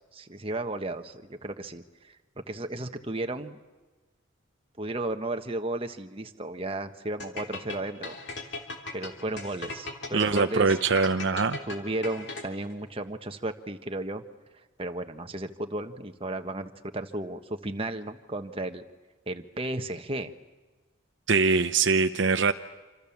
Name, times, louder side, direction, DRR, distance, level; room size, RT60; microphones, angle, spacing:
voice 1, 0.0-2.2 2.5-3.6 4.8-8.2 8.4-8.5 8.9-10.8 11.7-14.2 14.8-18.8 19.3-20.3, right 2 dB, 25° right, 6 dB, 1.3 m, -34 dB
sound 1, 7.2-12.7, left 3 dB, 55° left, 3.3 m, -38 dB
voice 2, 10.1-11.6 21.3-22.5, right 4 dB, 60° right, 8 dB, 0.8 m, -23 dB
27.5 x 26.5 x 7.3 m, 1.3 s
head